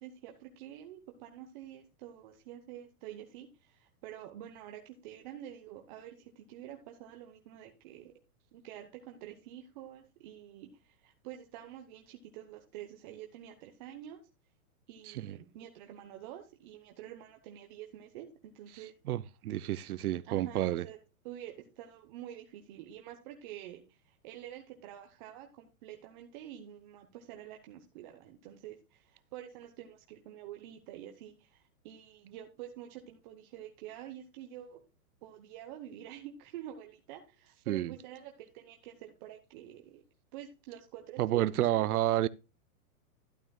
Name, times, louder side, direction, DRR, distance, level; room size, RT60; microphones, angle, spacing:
voice 1, 0.0-8.1 8.5-14.2 14.9-18.9 20.3-21.0 21.2-34.8 35.2-40.0 40.3-41.9, right 11 dB, 35° right, 0.9 m, -48 dB
voice 2, 15.1-15.4 19.1-20.9 37.7-37.9 41.2-42.3, right 14 dB, 85° right, 0.6 m, -30 dB
12.0 x 9.1 x 2.3 m
hypercardioid pair, 155°, 44 cm